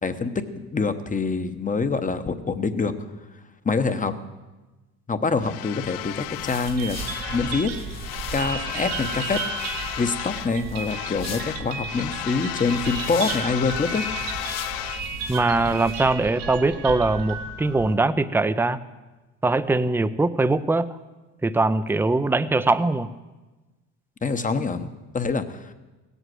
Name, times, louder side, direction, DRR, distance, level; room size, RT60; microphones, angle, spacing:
voice 1, 0.0-2.9 3.6-4.1 5.1-7.0 7.3-7.9 8.3-9.4 10.0-14.0 24.2-25.7, left 4 dB, 20° left, 9 dB, 1.0 m, -25 dB
sound 1, 5.4-7.7 8.0-10.6 10.8-15.1, left 17 dB, 75° left, 0.5 m, -34 dB
sound 2, 5.9-16.1, left 7 dB, 45° left, 1.2 m, -41 dB
sound 3, 6.6-17.9, right 5 dB, 85° right, 1.7 m, -34 dB
voice 2, 15.3-18.8 19.4-20.9 21.4-23.1, right 2 dB, 5° right, 14 dB, 0.5 m, -22 dB
17.0 x 8.2 x 7.7 m, 1.2 s
supercardioid pair, 95°, 36 cm